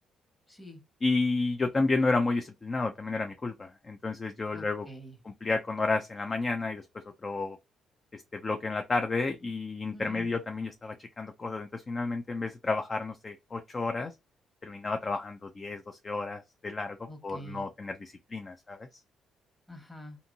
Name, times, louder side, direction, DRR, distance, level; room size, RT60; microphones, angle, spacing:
voice 1, 0.5-0.8 4.5-5.2 9.9-10.3 17.1-17.7 19.7-20.2, equal, 15° left, 1.3 m, -46 dB
voice 2, 1.0-4.9 5.3-6.8 7.2-7.6 8.1-14.1 14.6-17.0 17.2-18.9, left 3 dB, 30° left, 0.4 m, -31 dB
2.6 x 2.6 x 2.6 m
cardioid pair, 90°, 0 cm